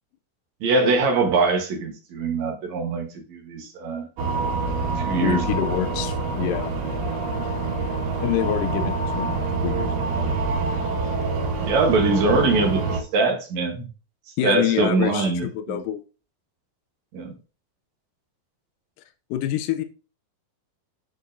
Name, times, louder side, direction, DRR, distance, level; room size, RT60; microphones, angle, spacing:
voice 1, 0.6-4.1 5.0-5.4 5.8-5.9 11.6-12.8 13.1-13.9 14.4-15.8 17.1-17.3, right 3 dB, 60° right, 2 dB, 2.1 m, -23 dB
sound 1, 4.2-13.0, right 3 dB, 80° right, 3.6 m, -26 dB
voice 2, 4.8-6.7 8.2-10.3 14.4-16.0 19.3-19.8, left 12 dB, 85° left, 8 dB, 2.0 m, -27 dB
11.0 x 4.6 x 2.6 m, 0.34 s
omnidirectional pair, 4.5 m